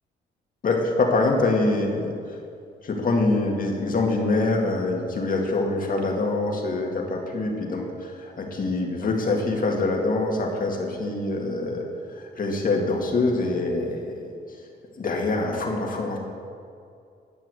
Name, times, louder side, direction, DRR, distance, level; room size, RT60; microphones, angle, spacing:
voice 1, 0.6-2.1 2.8-11.8 12.2-14.3 15.0-16.2, left 2 dB, 45° left, 1 dB, 2.1 m, -25 dB
11.0 x 5.8 x 7.8 m, 2.4 s
cardioid pair, 90°, 20 cm